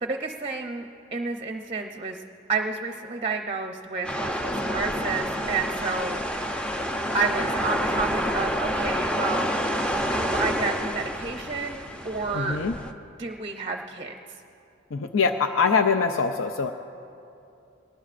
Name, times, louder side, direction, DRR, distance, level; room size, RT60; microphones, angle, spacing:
voice 1, 0.0-2.2 2.5-6.6 7.1-9.5 10.1-12.6 13.2-14.1, right 4 dB, 30° right, 4 dB, 0.6 m, -30 dB
sound 1, 4.0-12.9, equal, 5° left, 0.7 m, -28 dB
voice 2, 12.3-12.7 14.9-16.7, left 5 dB, 90° left, 7 dB, 0.5 m, -23 dB
23.0 x 19.0 x 2.5 m, 2.7 s
head